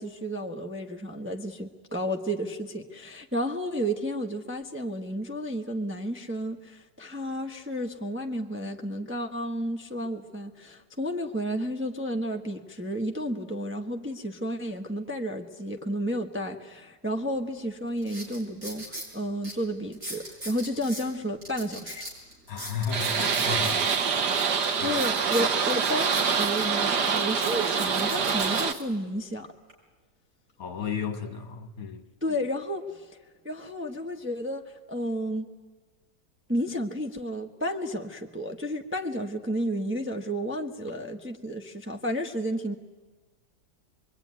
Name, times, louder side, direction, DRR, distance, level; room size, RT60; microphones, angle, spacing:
voice 1, 0.0-22.1 24.8-29.5 32.2-33.2 33.4-35.5 36.5-42.8, equal, 10° right, 1.0 m, -32 dB
sound 1, 17.3-17.4 18.0-19.1 19.4-19.5 19.9-21.0 21.4-24.0 24.3-24.4 24.9-26.7 27.0-28.8 29.4-29.7, equal, 45° right, 6.6 m, -39 dB
voice 2, 22.5-25.0 30.6-32.0, left 6 dB, 55° left, 1.9 m, -34 dB
sound 2, 22.9-28.7, right 6 dB, 70° right, 1.8 m, -25 dB
26.0 x 22.5 x 9.5 m
omnidirectional pair, 1.9 m